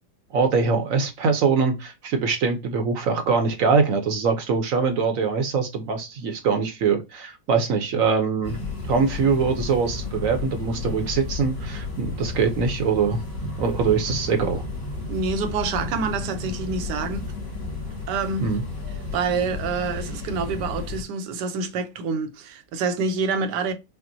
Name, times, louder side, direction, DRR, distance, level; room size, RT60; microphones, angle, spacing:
voice 1, 0.3-8.6 8.9-13.2 13.6-14.6 18.4-18.6, right 5 dB, 60° right, 1.0 m, -23 dB
sound 1, 8.4-21.0, left 3 dB, 80° left, 2.6 m, -32 dB
voice 2, 15.1-17.3 18.1-18.5 19.1-23.7, right 4 dB, 80° right, 1.3 m, -27 dB
5.9 x 2.1 x 2.6 m
omnidirectional pair, 1.8 m